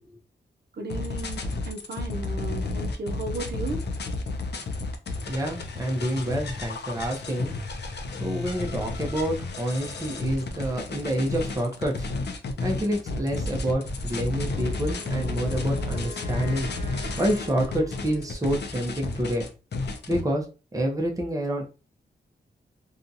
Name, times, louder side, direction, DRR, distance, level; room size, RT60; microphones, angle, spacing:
voice 1, 0.8-3.8, right 3 dB, 60° right, 0.5 m, -35 dB
sound 1, 0.9-20.2, left 3 dB, 65° left, 0.5 m, -32 dB
voice 2, 5.3-7.5 8.2-12.1 12.6-16.7 17.2-19.5 20.1-20.4 20.7-21.6, right 1 dB, 20° right, 0.7 m, -28 dB
sound 2, 13.2-15.0 15.4-18.3, right 1 dB, 15° left, 1.2 m, -42 dB
Wind instrument woodwind instrument, 14.5-18.6, left 2 dB, 45° left, 0.9 m, -44 dB
2.7 x 2.3 x 2.6 m
wide cardioid pair, 110°, 19 cm